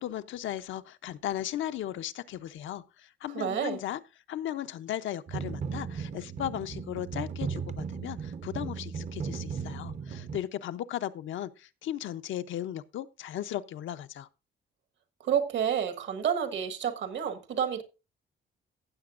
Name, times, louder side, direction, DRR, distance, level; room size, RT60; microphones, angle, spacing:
voice 1, 0.0-4.0 4.3-14.3, left 12 dB, 75° left, 0.6 m, -36 dB
voice 2, 3.3-3.8 15.2-17.8, right 8 dB, 65° right, 1.4 m, -29 dB
sound 1, 5.3-10.4, right 6 dB, 35° right, 0.6 m, -36 dB
15.5 x 7.7 x 2.5 m
cardioid pair, 150°, 20 cm